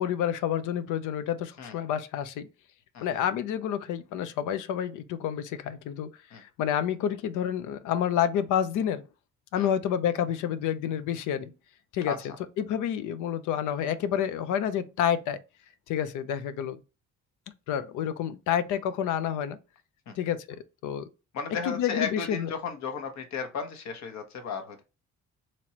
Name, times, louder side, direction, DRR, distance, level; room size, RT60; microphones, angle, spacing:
voice 1, 0.0-2.5 3.0-9.0 9.5-11.5 11.9-12.1 12.6-15.4 15.9-16.8 17.7-19.6 20.2-21.1 21.7-22.5, left 9 dB, 85° left, 0.5 m, -29 dB
voice 2, 21.3-24.8, left 6 dB, 65° left, 1.0 m, -34 dB
4.2 x 3.1 x 2.8 m
cardioid pair, 90°, 30 cm